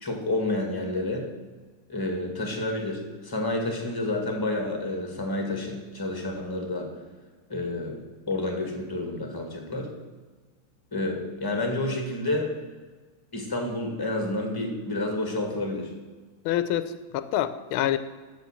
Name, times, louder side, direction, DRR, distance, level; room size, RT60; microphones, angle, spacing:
voice 1, 0.0-1.3 1.9-6.9 7.5-8.0 8.3-9.9 10.9-12.5 13.3-15.9, left 2 dB, 10° left, 2 dB, 1.9 m, -29 dB
voice 2, 16.4-18.0, left 11 dB, 85° left, 13 dB, 1.5 m, -26 dB
13.5 x 5.4 x 7.4 m, 1.4 s
omnidirectional pair, 2.3 m